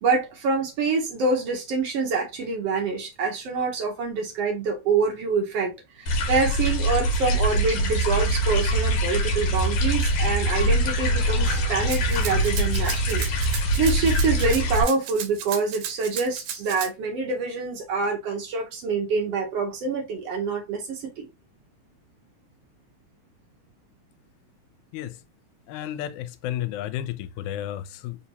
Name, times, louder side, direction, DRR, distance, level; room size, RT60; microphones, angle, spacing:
voice 1, 0.0-21.3, right 4 dB, 65° right, 1.7 m, -26 dB
sound 1, 6.1-14.8, right 1 dB, 70° left, 1.8 m, -23 dB
Rattle (instrument), 11.9-16.9, right 9 dB, 85° right, 2.1 m, -35 dB
voice 2, 25.7-28.2, left 12 dB, 85° left, 1.9 m, -32 dB
4.5 x 2.8 x 2.7 m
omnidirectional pair, 3.3 m